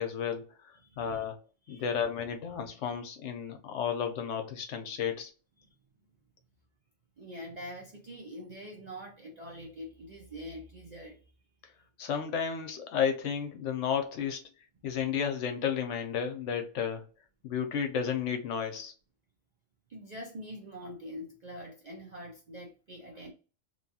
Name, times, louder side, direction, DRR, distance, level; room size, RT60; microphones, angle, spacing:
voice 1, 0.0-1.4 1.7-5.3 12.0-14.4 14.8-17.0 17.4-18.9, left 7 dB, 75° left, 1.0 m, -32 dB
voice 2, 0.8-1.2 1.7-2.0 5.6-5.7 7.2-11.2 19.9-23.3, equal, 55° right, 0.4 m, -44 dB
2.8 x 2.3 x 2.7 m
omnidirectional pair, 1.3 m